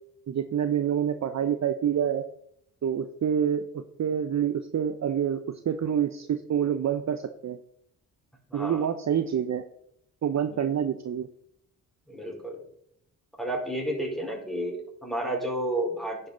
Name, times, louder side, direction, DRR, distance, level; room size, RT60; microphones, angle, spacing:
voice 1, 0.3-2.2 2.8-7.6 8.5-9.6 10.2-11.3, right 8 dB, 45° right, 10 dB, 0.8 m, -27 dB
voice 2, 12.1-12.6 13.4-16.3, right 1 dB, ahead, -1 dB, 4.6 m, -31 dB
10.5 x 8.2 x 3.9 m, 0.73 s
hypercardioid pair, 50°, 40 cm